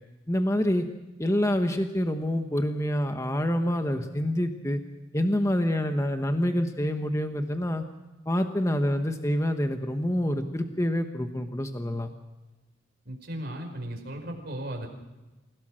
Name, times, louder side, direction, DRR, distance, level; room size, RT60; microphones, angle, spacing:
voice 1, 0.3-0.9 1.2-4.8 5.1-7.8 8.3-12.1, equal, 15° left, 6 dB, 1.1 m, -27 dB
voice 2, 13.0-14.9, right 1 dB, 55° right, 2 dB, 5.0 m, -36 dB
28.0 x 17.0 x 6.3 m, 1.1 s
head